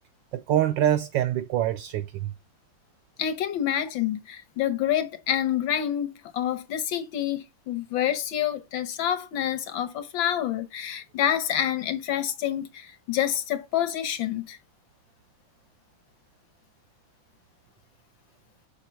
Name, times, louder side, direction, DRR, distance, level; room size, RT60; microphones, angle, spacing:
voice 1, 0.3-2.3, right 11 dB, 75° right, 1.0 m, -25 dB
voice 2, 3.2-14.6, left 10 dB, 70° left, 1.6 m, -27 dB
7.1 x 5.1 x 4.4 m
omnidirectional pair, 2.4 m